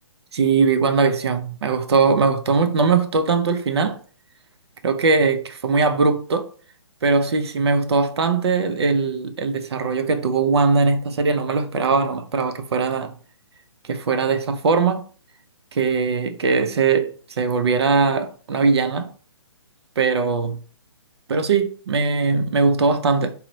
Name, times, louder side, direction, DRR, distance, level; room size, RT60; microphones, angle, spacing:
voice 1, 0.3-4.0 4.8-6.5 7.0-13.1 13.9-15.1 15.7-19.1 20.0-20.6 21.3-23.3, right 4 dB, 60° right, 0.6 m, -20 dB
4.1 x 2.0 x 4.0 m
hypercardioid pair, 145°, 15 cm